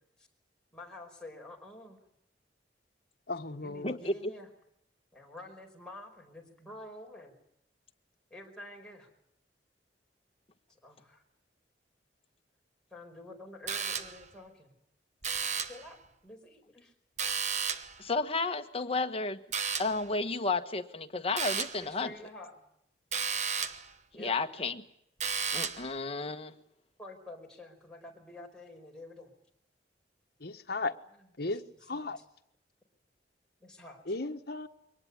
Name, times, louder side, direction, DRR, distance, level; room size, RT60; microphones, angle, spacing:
voice 1, 0.7-2.0 3.5-4.5 5.1-7.3 8.3-9.1 10.7-11.2 12.9-14.7 15.6-16.0 16.2-16.9 21.8-22.6 24.1-24.4 27.0-29.3 31.9-32.1 33.6-34.0, left 1 dB, 5° left, 4.9 m, -48 dB
voice 2, 3.3-4.0 30.4-31.0 31.4-31.6 31.9-32.2 34.0-34.7, left 3 dB, 60° left, 1.4 m, -35 dB
voice 3, 3.8-4.1 18.0-19.4 19.8-22.1 24.2-24.8 25.5-26.5, left 3 dB, 35° left, 1.3 m, -32 dB
Türsummer - kurz mehrmals, 13.7-14.3 15.2-15.9 17.2-18.0 19.5-20.1 21.4-21.9 23.1-23.9 25.2-25.9, right 6 dB, 40° right, 1.2 m, -33 dB
23.5 x 19.0 x 9.6 m
head